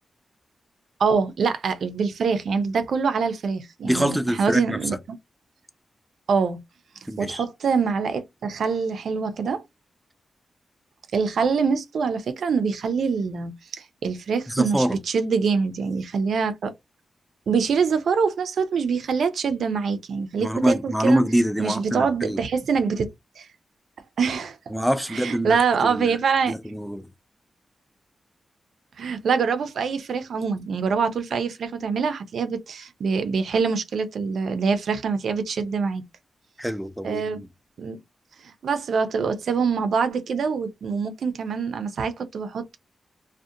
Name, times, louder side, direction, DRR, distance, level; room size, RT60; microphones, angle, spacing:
voice 1, 1.0-4.9 6.3-6.6 7.2-9.6 11.1-16.7 17.5-21.2 21.6-23.1 23.4-23.5 24.2-24.6 25.1-26.5 29.0-36.0 37.0-37.4 37.8-38.0 38.4-42.8, right 5 dB, 80° right, 0.4 m, -24 dB
voice 2, 3.8-4.9 7.1-7.4 14.5-15.0 20.4-22.4 24.7-26.2 26.5-27.1 36.6-37.5, right 1 dB, ahead, 0.3 m, -25 dB
2.6 x 2.1 x 2.4 m
wide cardioid pair, 150°, 0 cm